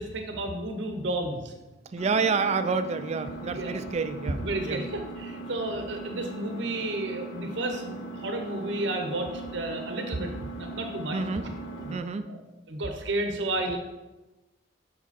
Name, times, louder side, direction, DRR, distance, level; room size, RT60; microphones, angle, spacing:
voice 1, 0.0-1.5 3.5-3.7 4.4-11.5 11.8-12.0 12.3-12.4 12.7-13.8, right 1 dB, 65° right, 5 dB, 0.8 m, -32 dB
voice 2, 1.9-4.8 11.1-11.5 11.9-12.3, right 4 dB, 35° right, 10 dB, 0.4 m, -28 dB
Engine, 2.0-12.0, right 3 dB, 80° left, 1.1 m, -40 dB
7.2 x 5.0 x 4.2 m, 1.1 s
head